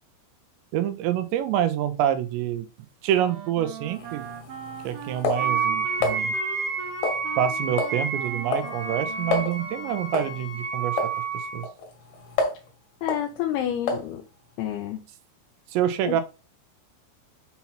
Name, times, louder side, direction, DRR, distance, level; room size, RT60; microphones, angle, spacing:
voice 1, 0.7-2.7 3.0-4.2 4.8-6.3 7.4-11.0 11.5-11.7 15.7-16.2, right 10 dB, 90° right, 10 dB, 2.9 m, -26 dB
Wind instrument woodwind instrument, 3.1-10.5, right 7 dB, 70° right, 2.6 m, -40 dB
sound 1, 3.9-6.2 7.0-7.5 7.8-8.0 8.3-8.7 9.0-9.1 9.3-9.5 10.1-10.4 11.0-11.1 11.6-12.7 13.1-13.3 13.9-14.1, left 3 dB, 60° left, 2.1 m, -28 dB
Wind instrument woodwind instrument 2, 5.3-11.7, right 5 dB, 40° right, 1.7 m, -30 dB
voice 2, 13.0-14.2 14.6-15.0 16.0-16.2, left 10 dB, 80° left, 3 dB, 2.4 m, -29 dB
7.1 x 2.9 x 5.6 m, 0.30 s
omnidirectional pair, 5.2 m